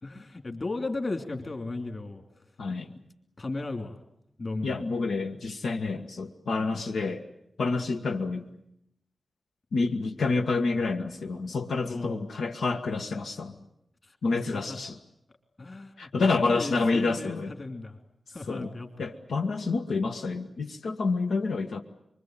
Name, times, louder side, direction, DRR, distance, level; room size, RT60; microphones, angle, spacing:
voice 1, 0.0-2.2 2.8-2.9 3.4-4.0 4.4-4.8 11.9-12.2 14.1-14.8 15.6-18.0 18.3-18.9, left 2 dB, 35° left, 5 dB, 3.1 m, -35 dB
voice 2, 2.6-2.9 4.6-7.2 7.6-8.5 9.7-13.6 14.2-15.0 16.0-17.5 18.5-18.7 19.0-21.8, left 3 dB, 85° left, 3 dB, 1.6 m, -28 dB
25.0 x 24.0 x 9.1 m, 0.78 s
wide cardioid pair, 140°, 0 cm